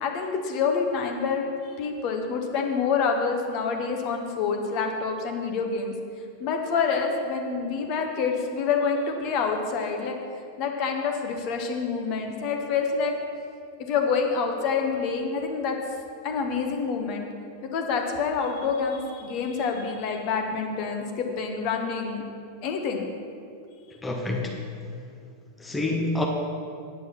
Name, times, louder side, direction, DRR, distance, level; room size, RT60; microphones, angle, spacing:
voice 1, 0.0-1.4 1.8-5.9 6.4-10.2 10.6-13.1 13.8-15.8 16.2-17.2 17.7-22.2 22.6-23.0, left 5 dB, 40° left, 3 dB, 1.3 m, -27 dB
voice 2, 24.0-24.6 25.6-26.3, left 2 dB, 10° left, 1 dB, 1.0 m, -27 dB
9.2 x 8.3 x 5.7 m, 2.4 s
figure-of-eight pair, 90°, 0 cm